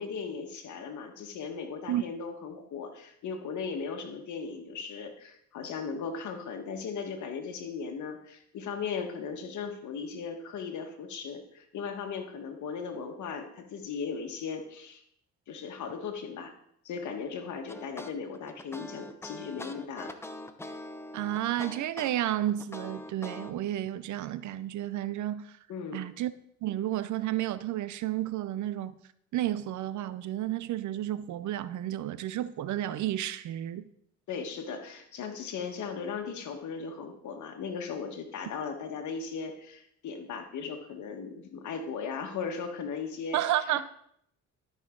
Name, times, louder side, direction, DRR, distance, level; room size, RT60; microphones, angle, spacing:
voice 1, 0.0-15.0 15.5-16.5 16.9-20.2 25.7-26.0 34.3-43.4 43.7-43.8, left 5 dB, 70° left, 1.6 m, -37 dB
sound 1, 17.7-23.5, left 1 dB, 10° left, 0.7 m, -43 dB
voice 2, 21.1-25.5 25.9-26.3 26.6-28.9 29.3-33.8 43.3-43.8, right 13 dB, 70° right, 0.6 m, -31 dB
13.0 x 5.8 x 3.8 m
cardioid pair, 90°, 30 cm